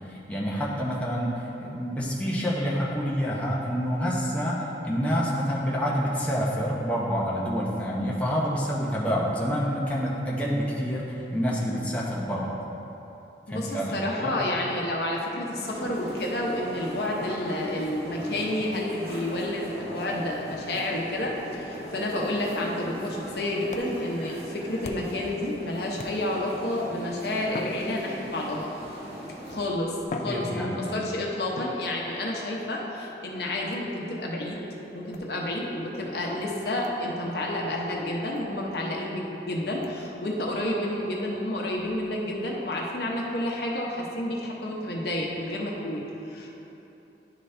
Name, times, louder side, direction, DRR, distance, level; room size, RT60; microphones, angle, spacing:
voice 1, 0.1-12.5 13.5-14.3 30.3-30.8, equal, 10° left, -6 dB, 0.7 m, -28 dB
voice 2, 13.5-28.7 29.5-34.6 34.9-46.5, left 1 dB, 65° left, -2 dB, 0.8 m, -30 dB
sound 1, 15.6-29.7, equal, 35° right, 1.2 m, -39 dB
sound 2, 23.7-25.3 26.0-26.6 27.4-28.6 29.4-29.5 30.0-31.1 31.5-32.3 33.7-34.0 35.1-35.3 35.9-36.0 36.4-36.5 36.8-37.0 37.3-37.4 37.8-37.9 38.3-38.4 38.9-39.0 39.8-40.0, left 2 dB, 40° left, 0.4 m, -41 dB
11.0 x 4.0 x 3.3 m, 3.0 s
head